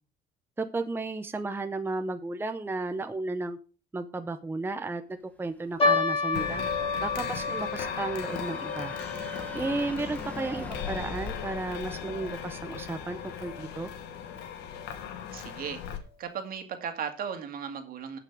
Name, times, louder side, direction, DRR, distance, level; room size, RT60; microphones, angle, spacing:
voice 1, 0.6-3.6 3.9-6.6 7.0-9.0 9.5-13.9, right 3 dB, 15° right, 9 dB, 0.7 m, -33 dB
sound 1, 5.5-15.3, left 1 dB, 10° left, 1.6 m, -46 dB
sound 2, 5.8-12.3 12.6-12.7 13.4-13.7 14.3-14.4 14.7-14.9, left 4 dB, 35° left, 3.1 m, -32 dB
sound 3, 6.3-16.0, left 7 dB, 85° left, 1.6 m, -38 dB
voice 2, 15.3-15.8 16.2-18.2, right 7 dB, 60° right, 6 dB, 2.1 m, -36 dB
17.0 x 5.9 x 3.6 m, 0.36 s
cardioid pair, 110°, 17 cm